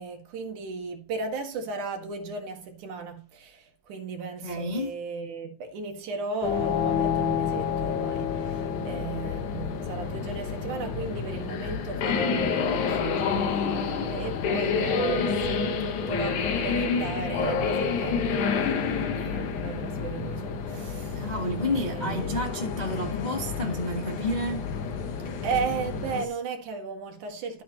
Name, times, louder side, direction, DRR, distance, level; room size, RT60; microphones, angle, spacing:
voice 1, 0.0-21.3 21.6-22.3 25.4-27.6, right 4 dB, 85° right, 3.2 m, -35 dB
voice 2, 4.4-5.0 21.1-24.7, left 1 dB, 35° left, 0.7 m, -30 dB
sound 1, 6.4-26.2, left 6 dB, 85° left, 2.7 m, -29 dB
12.5 x 8.4 x 2.9 m
omnidirectional pair, 3.4 m